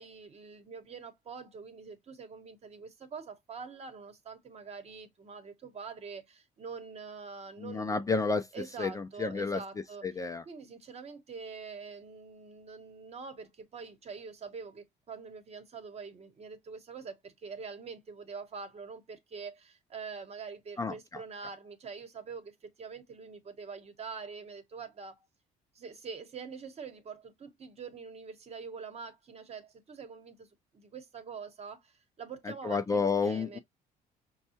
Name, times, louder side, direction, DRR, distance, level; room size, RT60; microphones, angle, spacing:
voice 1, 0.0-8.0 8.5-10.1 10.5-25.2 25.7-30.5 30.7-33.6, right 5 dB, 40° right, 1.0 m, -45 dB
voice 2, 7.6-8.5 8.8-9.6 10.0-10.4 20.8-21.2 32.4-33.6, left 4 dB, 20° left, 0.4 m, -31 dB
5.3 x 2.2 x 2.8 m
cardioid pair, 110°, 17 cm